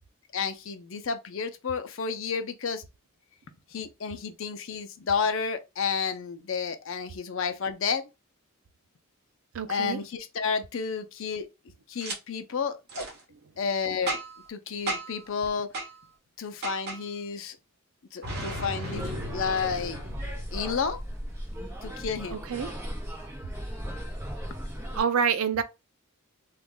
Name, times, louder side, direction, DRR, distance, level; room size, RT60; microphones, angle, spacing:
voice 1, 0.3-2.8 3.7-8.0 9.7-11.5 11.9-12.8 13.6-14.2 14.5-15.7 16.4-17.6 18.1-20.0 20.5-21.0 21.8-22.4, left 5 dB, 60° left, 0.5 m, -31 dB
voice 2, 9.5-10.0 13.3-13.5 22.3-22.7 24.9-25.6, right 7 dB, 70° right, 0.4 m, -27 dB
Boom, 12.0-12.2 12.9-13.1 14.1-14.5 14.9-15.2 15.7-15.9 16.6-17.0 18.2-20.9, right 2 dB, 45° right, 1.1 m, -35 dB
sound 1, 18.9-25.0, equal, 10° right, 0.9 m, -37 dB
3.0 x 2.4 x 3.6 m
head